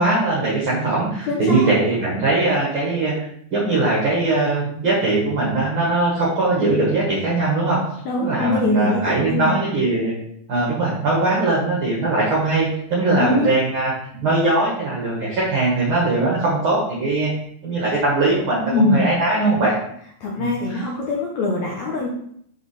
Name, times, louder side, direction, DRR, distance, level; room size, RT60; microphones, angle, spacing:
voice 1, 0.0-3.2 3.5-7.8 8.2-10.1 10.5-13.9 14.2-17.3 17.6-19.8 20.4-20.8, right 2 dB, 50° right, -6 dB, 1.7 m, -20 dB
voice 2, 1.3-1.7 8.1-9.5 13.2-13.6 18.7-19.1 20.2-22.1, left 2 dB, 70° left, -3 dB, 1.8 m, -22 dB
6.1 x 5.2 x 3.3 m, 0.67 s
omnidirectional pair, 4.1 m